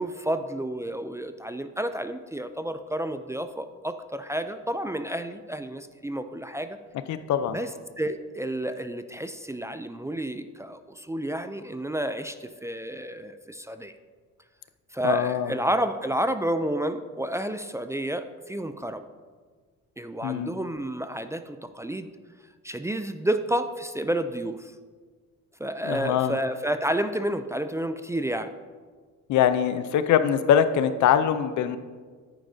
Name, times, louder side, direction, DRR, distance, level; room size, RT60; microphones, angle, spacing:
voice 1, 0.0-6.8 7.5-7.7 8.0-13.9 14.9-19.0 20.0-22.1 22.6-24.7 25.6-28.5, right 1 dB, 10° right, 9 dB, 0.4 m, -30 dB
voice 2, 7.1-7.6 15.0-15.5 20.2-20.5 25.8-26.4 29.3-31.8, left 9 dB, 70° left, 11 dB, 0.6 m, -23 dB
10.5 x 9.0 x 2.7 m, 1.5 s
cardioid pair, 90°, 30 cm